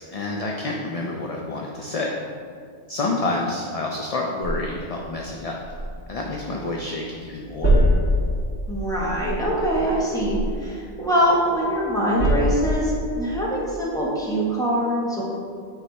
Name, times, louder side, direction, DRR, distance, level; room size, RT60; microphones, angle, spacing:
voice 1, 0.0-2.1 2.9-5.6 6.1-7.8, left 2 dB, 45° left, -1 dB, 0.5 m, -28 dB
sound 1, 4.4-7.0 7.2-11.5 11.9-13.2, equal, 55° right, 1.7 m, -25 dB
voice 2, 8.7-15.2, equal, 5° left, -6 dB, 1.3 m, -23 dB
9.1 x 3.3 x 4.1 m, 2.2 s
omnidirectional pair, 1.1 m